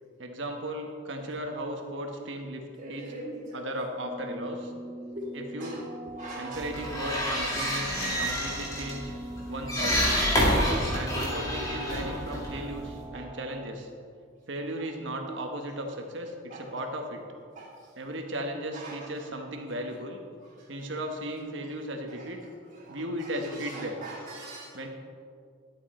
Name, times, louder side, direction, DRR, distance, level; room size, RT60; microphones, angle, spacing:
voice 1, 0.2-2.6 2.9-3.1 3.5-4.7 5.3-5.8 6.4-9.1 9.5-10.4 10.9-13.9 14.5-17.2 18.0-20.2 20.7-22.4 22.9-24.0 24.7-24.9, right 1 dB, 70° right, 3 dB, 1.2 m, -36 dB
voice 2, 2.8-3.6 5.1-5.2 5.6-5.8 6.2-6.6 7.0-7.1 13.1-13.2 16.5-16.6 17.6-17.7 18.7-19.1 22.2-22.3 22.8-24.9, right 2 dB, 40° right, -11 dB, 2.1 m, -42 dB
sound 1, 4.0-13.7, right 1 dB, 55° right, 1.9 m, -43 dB
sound 2, 6.5-13.0, equal, 20° left, 2.0 m, -28 dB
11.0 x 7.9 x 4.3 m, 2.2 s
head